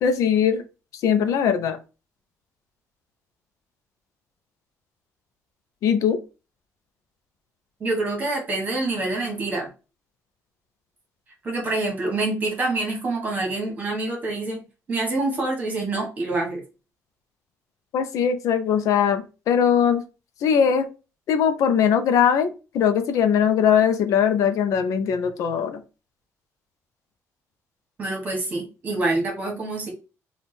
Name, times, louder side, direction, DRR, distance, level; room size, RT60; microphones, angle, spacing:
voice 1, 0.0-0.6 1.0-1.8 5.8-6.2 17.9-20.0 20.4-20.9 21.3-25.8, left 8 dB, 75° left, 9 dB, 0.5 m, -20 dB
voice 2, 7.8-9.7 11.4-16.6 28.0-29.9, right 2 dB, 30° right, 1 dB, 1.4 m, -26 dB
3.5 x 2.4 x 4.1 m, 0.31 s
cardioid pair, 170°, 6 cm